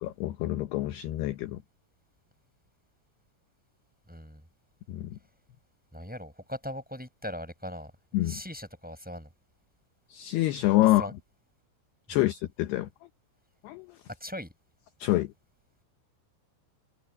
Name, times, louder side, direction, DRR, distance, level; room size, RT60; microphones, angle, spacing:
voice 1, 0.0-1.6 4.9-5.2 8.1-8.4 10.1-11.1 12.1-12.9 13.6-14.0 15.0-15.3, left 16 dB, 75° left, 2.6 m, -27 dB
voice 2, 4.1-4.4 5.9-7.9 8.3-9.3 11.0-11.1 12.1-12.2 14.2-14.5, left 1 dB, ahead, 5.5 m, -39 dB
omnidirectional pair, 5.6 m